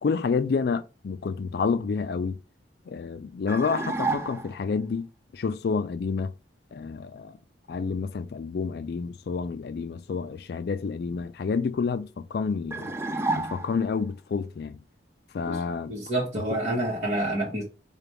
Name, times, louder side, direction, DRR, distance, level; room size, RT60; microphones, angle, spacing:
voice 1, 0.0-2.4 2.9-6.3 6.7-7.4 7.7-12.9 13.4-14.8 15.3-16.0 16.5-16.6, left 5 dB, 60° left, 0.4 m, -29 dB
sound 1, 3.5-4.7 12.7-14.0, right 2 dB, 15° right, 0.3 m, -30 dB
voice 2, 15.9-17.6, right 1 dB, 40° right, 1.1 m, -28 dB
4.9 x 2.3 x 3.0 m
head